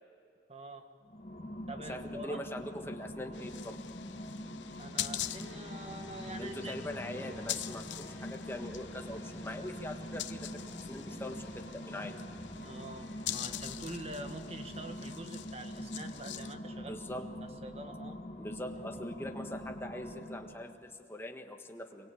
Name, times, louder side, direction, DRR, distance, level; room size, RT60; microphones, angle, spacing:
voice 1, 0.5-0.9 1.7-2.4 4.7-6.8 12.6-17.0 17.6-18.2, right 1 dB, 35° right, 6 dB, 1.6 m, -45 dB
sound 1, 1.0-20.8, equal, 40° left, 2.0 m, -44 dB
voice 2, 1.9-3.8 6.4-12.2 16.9-17.3 18.4-22.1, left 1 dB, 15° left, 4 dB, 1.5 m, -42 dB
sound 2, 3.3-16.5, left 12 dB, 80° left, 0.8 m, -44 dB
sound 3, 5.2-15.0, left 1 dB, 15° right, 6.9 m, -51 dB
26.5 x 23.5 x 8.7 m, 2.7 s
head